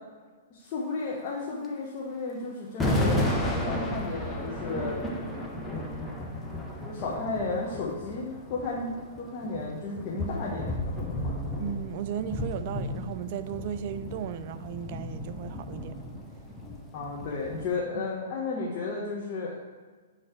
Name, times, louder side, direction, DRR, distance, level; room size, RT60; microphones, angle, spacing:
voice 1, 0.5-5.0 5.7-6.1 6.8-11.2 16.9-19.5, left 3 dB, 40° left, -4 dB, 1.1 m, -33 dB
sound 1, 1.6-1.7 2.8-17.8, left 1 dB, 5° left, 0.8 m, -33 dB
voice 2, 11.6-15.9 17.6-18.1, right 9 dB, 45° right, 12 dB, 0.4 m, -36 dB
9.6 x 3.2 x 4.5 m, 1.4 s
figure-of-eight pair, 115°, 0 cm